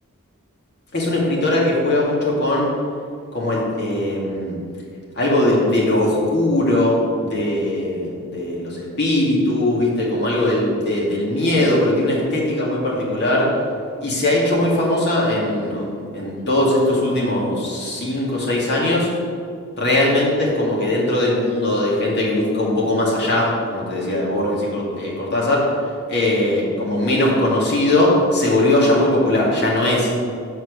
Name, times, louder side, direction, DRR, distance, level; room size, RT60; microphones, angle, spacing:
voice 1, 0.9-2.7 3.3-4.6 5.2-13.5 14.0-19.1 19.8-25.7 26.1-30.3, left 1 dB, 50° left, -4 dB, 2.2 m, -20 dB
6.9 x 6.2 x 6.6 m, 2.3 s
head